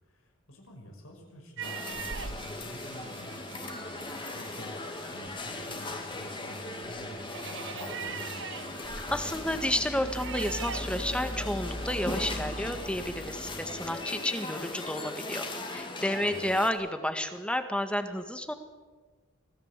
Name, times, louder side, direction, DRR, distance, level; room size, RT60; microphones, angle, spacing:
voice 1, 0.0-8.7 16.2-16.5, left 1 dB, 80° left, 1 dB, 5.7 m, -48 dB
sound 1, 1.6-16.7, left 2 dB, 25° left, 2.5 m, -39 dB
sound 2, 1.6-12.6, right 7 dB, 60° right, 0.9 m, -44 dB
sound 3, 8.5-14.4, equal, 10° right, 2.7 m, -40 dB
voice 2, 9.1-18.5, left 1 dB, 5° left, 8 dB, 1.7 m, -31 dB
25.0 x 16.5 x 8.3 m, 1.3 s
head